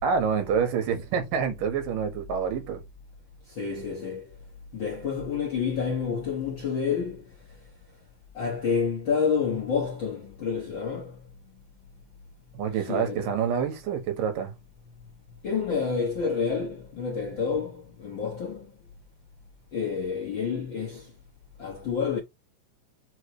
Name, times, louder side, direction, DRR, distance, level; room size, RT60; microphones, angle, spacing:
voice 1, 0.0-2.8 12.5-14.5, right 7 dB, 80° right, 3.1 m, -27 dB
voice 2, 3.4-4.3 4.7-7.6 8.3-11.2 12.7-13.3 15.4-18.7 19.7-21.1 21.6-22.2, left 6 dB, 55° left, 1.3 m, -29 dB
6.0 x 3.3 x 4.8 m
omnidirectional pair, 3.8 m